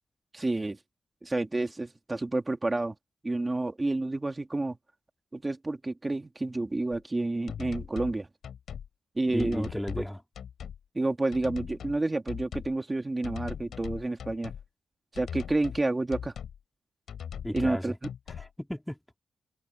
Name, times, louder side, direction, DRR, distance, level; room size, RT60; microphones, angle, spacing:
voice 1, 0.3-0.8 1.2-2.9 3.2-4.8 5.3-8.3 9.2-9.7 10.9-14.5 15.1-16.3 17.5-17.9, right 2 dB, 15° right, 1.8 m, -29 dB
sound 1, 7.5-8.2 8.4-8.9 9.4-10.1 10.3-10.8 11.3-12.0 12.3-12.8 13.2-14.6 15.1-15.8 16.1-16.6 17.1-17.8 18.0-18.5, left 8 dB, 75° left, 4.9 m, -40 dB
voice 2, 9.3-10.2 17.4-18.0 18.4-19.0, equal, 5° left, 1.7 m, -34 dB
wide cardioid pair, 165°, 0 cm